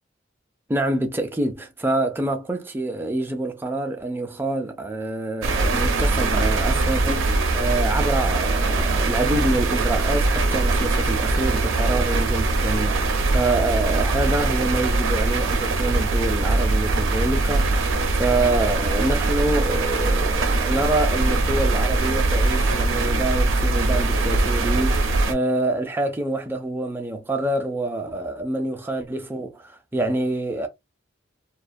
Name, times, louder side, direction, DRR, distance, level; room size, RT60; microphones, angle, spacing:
voice 1, 0.7-30.7, right 2 dB, 10° right, 0.3 m, -26 dB
sound 1, 5.4-25.3, right 2 dB, 80° right, 0.5 m, -22 dB
2.3 x 2.1 x 2.5 m
head